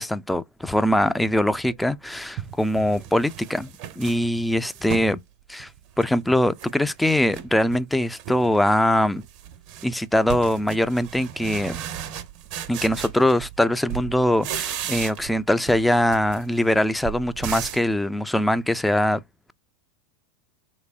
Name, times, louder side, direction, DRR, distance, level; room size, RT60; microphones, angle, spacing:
voice 1, 0.0-3.7 4.0-5.2 5.5-5.7 6.0-9.2 9.8-11.8 12.7-19.2, left 1 dB, 5° left, 0.3 m, -22 dB
sound 1, 1.7-1.8 2.4-5.2 5.6-6.7 7.0-7.8 8.2-8.6 8.9-13.6 13.9-15.4 15.7-17.9, right 10 dB, 45° right, 0.6 m, -35 dB
3.1 x 3.0 x 2.6 m
figure-of-eight pair, 85°, 0 cm